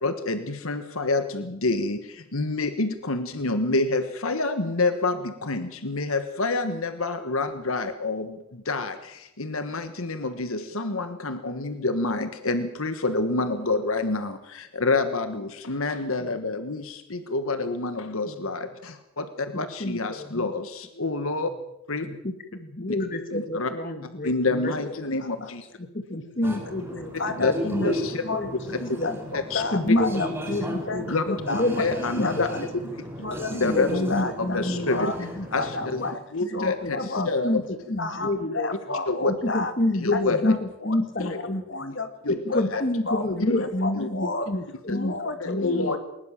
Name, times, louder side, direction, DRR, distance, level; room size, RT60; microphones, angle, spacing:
voice 1, 0.0-21.5 21.9-22.1 22.9-23.0 23.3-23.7 24.2-25.6 27.3-27.5 27.8-28.2 29.3-29.6 31.1-31.4 31.8-32.5 32.8-32.9 33.5-34.0 34.4-35.1 35.5-36.0 36.3-37.6 39.1-39.3 40.0-40.4 41.2-41.4 42.2-42.8 43.4-43.7 44.0-44.1 44.9-45.0 45.4-46.0, left 3 dB, 75° left, 9 dB, 1.4 m, -27 dB
voice 2, 19.5-20.5 21.0-21.1 22.0-25.3 25.8-27.1 27.4-28.5 28.9-29.2 29.7-31.8 32.2-32.6 33.5-35.9 36.4-36.9 37.2-38.7 39.3-40.6 40.8-41.9 42.3-46.0, left 1 dB, 40° left, 7 dB, 1.7 m, -29 dB
voice 3, 25.2-25.5 27.2-27.9 28.2-28.4 28.8-30.3 30.9-32.6 33.2-35.2 35.6-36.2 36.5-37.6 38.0-39.7 40.1-41.4 41.7-44.5 44.9-46.0, left 3 dB, 55° left, 8 dB, 2.3 m, -32 dB
sound 1, 26.4-36.1, equal, 10° right, 4.7 m, -35 dB
20.5 x 20.0 x 7.4 m, 0.86 s
head